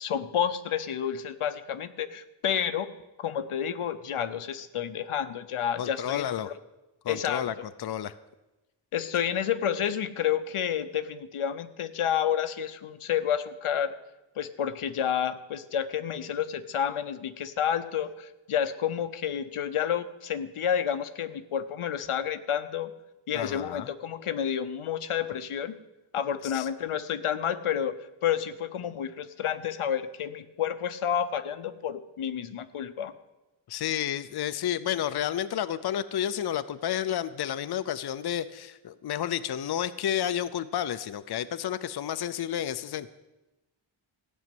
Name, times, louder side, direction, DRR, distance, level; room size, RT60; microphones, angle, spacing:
voice 1, 0.0-2.9 3.2-6.5 7.1-7.6 8.9-14.0 14.4-22.9 23.3-25.8 26.1-33.1, left 9 dB, 85° left, 11 dB, 0.9 m, -30 dB
voice 2, 5.8-6.5 7.0-8.1 23.3-23.9 26.4-26.7 33.7-43.1, left 10 dB, 50° left, 13 dB, 0.5 m, -31 dB
15.0 x 6.3 x 9.3 m, 1.0 s
wide cardioid pair, 150°, 49 cm